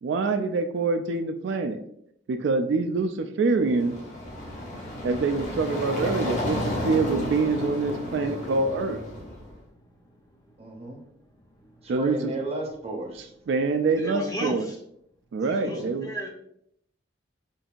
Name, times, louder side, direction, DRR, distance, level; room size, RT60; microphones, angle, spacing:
voice 1, 0.0-1.8 2.3-4.0 5.0-9.0 11.9-12.3 13.5-14.7 15.3-16.3, right 3 dB, 70° right, 8 dB, 0.3 m, -25 dB
sound 1, 3.5-9.5, left 1 dB, 40° left, 0.9 m, -32 dB
voice 2, 9.5-11.9 14.0-14.8 15.4-16.3, equal, 20° left, 0 dB, 0.7 m, -38 dB
voice 3, 10.6-11.0 11.8-13.3 15.6-15.9, right 2 dB, 35° right, 1 dB, 0.7 m, -34 dB
5.3 x 2.6 x 2.4 m, 0.73 s
head